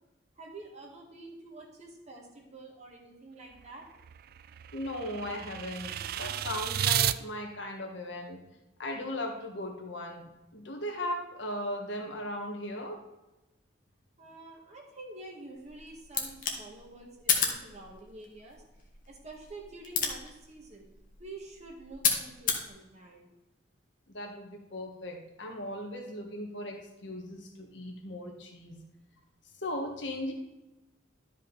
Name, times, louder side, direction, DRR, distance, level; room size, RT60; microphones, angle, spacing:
voice 1, 0.4-3.9 14.2-18.6 19.1-20.9 21.2-23.3, right 2 dB, 35° right, -1 dB, 1.7 m, -48 dB
sound 1, 3.5-7.2, right 11 dB, 55° right, 0.3 m, -32 dB
voice 2, 4.7-8.4 8.8-10.2 10.5-13.0 24.1-28.8 29.6-30.3, left 1 dB, 70° left, 2 dB, 1.7 m, -37 dB
sound 2, 15.6-22.7, left 6 dB, 45° left, 1.3 m, -34 dB
12.0 x 5.3 x 4.1 m, 1.0 s
head